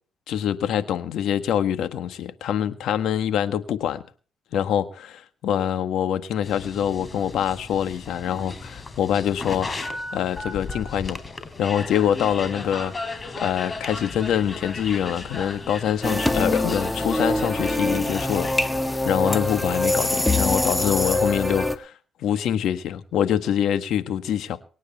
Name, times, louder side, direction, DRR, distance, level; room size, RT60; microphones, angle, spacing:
voice 1, 0.3-4.0 4.5-9.7 10.1-11.2 11.6-12.9 13.4-21.9 22.2-24.6, left 9 dB, 80° left, 10 dB, 1.6 m, -25 dB
sound 1, 6.4-20.7, left 3 dB, 30° left, 3.2 m, -36 dB
sound 2, 16.0-21.8, left 2 dB, 10° left, 1.7 m, -24 dB
24.0 x 9.5 x 4.3 m, 0.39 s
cardioid pair, 90°, 0 cm